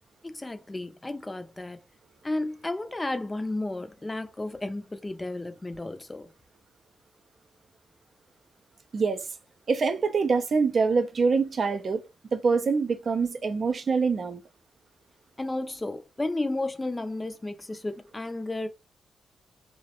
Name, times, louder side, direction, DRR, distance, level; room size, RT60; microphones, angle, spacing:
voice 1, 0.2-1.8 2.2-6.3 15.4-18.7, left 2 dB, 20° left, 0.4 m, -33 dB
voice 2, 8.9-9.3 9.7-12.0 12.3-14.4, right 4 dB, 55° right, 0.4 m, -25 dB
2.3 x 2.1 x 2.8 m
supercardioid pair, 55°, 0 cm